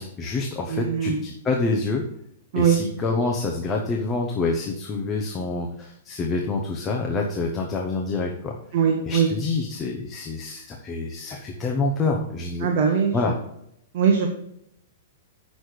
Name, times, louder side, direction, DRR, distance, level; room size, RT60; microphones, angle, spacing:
voice 1, 0.0-2.0 2.5-8.6 9.0-12.7 13.1-13.3, left 3 dB, 15° left, 0 dB, 0.8 m, -27 dB
voice 2, 0.7-1.2 2.5-2.8 8.7-9.3 12.6-13.3 13.9-14.3, right 7 dB, 40° right, 1 dB, 1.2 m, -21 dB
7.8 x 6.3 x 4.9 m, 0.74 s
hypercardioid pair, 175°, 0 cm